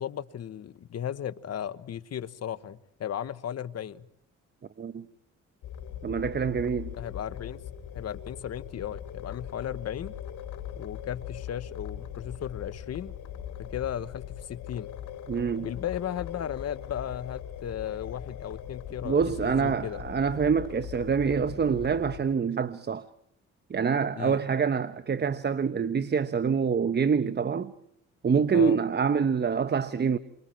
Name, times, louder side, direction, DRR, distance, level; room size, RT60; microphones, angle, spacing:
voice 1, 0.0-4.1 7.0-7.7 7.9-10.2 10.8-13.2 13.6-14.9 15.6-20.0 24.2-24.4 28.5-28.8, left 10 dB, 55° left, 1.2 m, -35 dB
sound 1, 5.6-22.2, left 9 dB, 75° left, 4.8 m, -40 dB
voice 2, 6.0-7.0 15.3-15.7 19.0-23.1 23.7-27.7 28.2-30.2, right 6 dB, 35° right, 1.1 m, -26 dB
29.5 x 25.0 x 4.5 m
cardioid pair, 90°, 30 cm